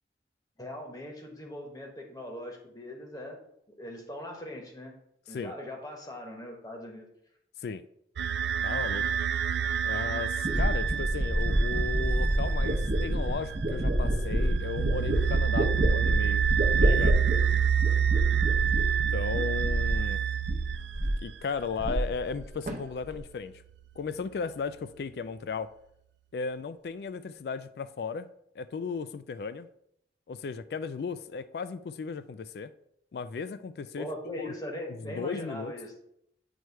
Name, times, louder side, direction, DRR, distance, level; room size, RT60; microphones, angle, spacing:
voice 1, 0.6-3.4 3.7-4.9 5.3-7.1 34.0-35.9, left 1 dB, 20° left, 1.0 m, -40 dB
sound 1, 8.2-21.3, right 8 dB, 75° right, 0.4 m, -28 dB
voice 2, 8.6-9.1 9.8-16.5 16.8-17.2 19.1-20.2 21.2-23.5 24.0-25.7 26.3-28.3 28.6-29.7 30.3-32.7 33.1-34.1 34.4-34.5 35.0-35.7, left 5 dB, 65° left, 0.3 m, -35 dB
sound 2, 9.7-9.8 10.4-20.1 20.4-21.3 21.6-22.4 22.7-23.2, right 1 dB, 45° right, 0.7 m, -28 dB
8.1 x 3.1 x 4.5 m
head